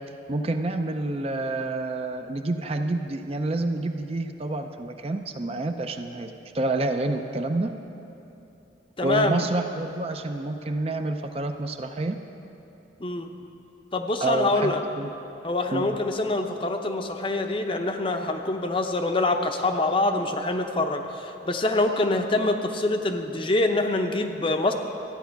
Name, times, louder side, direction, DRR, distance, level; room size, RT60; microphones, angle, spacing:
voice 1, 0.3-7.7 9.0-12.2 14.2-15.1 15.7-16.0, right 2 dB, 30° right, 6 dB, 0.5 m, -28 dB
voice 2, 9.0-9.4 13.0-13.3 13.9-14.8 15.4-24.7, left 2 dB, 30° left, 5 dB, 0.6 m, -25 dB
13.5 x 9.1 x 5.8 m, 2.9 s
head